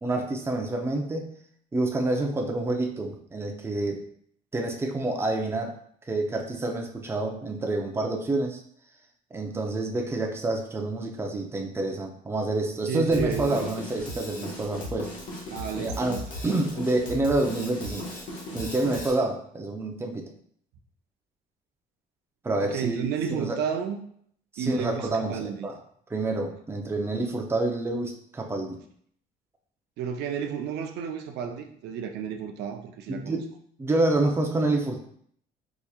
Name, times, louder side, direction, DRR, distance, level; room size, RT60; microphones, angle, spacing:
voice 1, 0.0-1.3 1.7-4.0 4.5-5.7 6.1-8.6 9.3-15.1 15.8-18.1 18.5-20.3 22.4-23.6 24.5-25.7 26.1-28.8 33.1-33.5 33.8-35.0, right 2 dB, 15° right, 2 dB, 0.5 m, -28 dB
voice 2, 12.9-13.8 15.5-16.3 22.6-24.0 24.6-25.7 30.0-33.4, right 7 dB, 80° right, 4 dB, 0.5 m, -32 dB
Drum kit, 13.1-19.1, left 1 dB, 50° left, 1.3 m, -37 dB
4.7 x 2.8 x 2.3 m, 0.64 s
cardioid pair, 110°, 17 cm